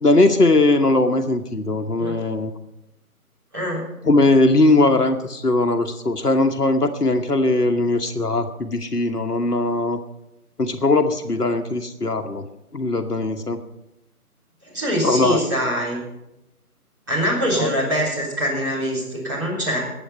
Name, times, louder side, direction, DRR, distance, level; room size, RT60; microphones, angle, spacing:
voice 1, 0.0-2.5 4.0-10.0 10.6-12.4 12.7-13.6 15.0-15.4 17.6-17.7, left 2 dB, 85° left, 7 dB, 1.2 m, -19 dB
voice 2, 3.5-3.9 14.6-16.0 17.1-19.8, equal, 15° right, -10 dB, 3.7 m, -23 dB
21.0 x 7.9 x 5.5 m, 0.89 s
figure-of-eight pair, 165°, 46 cm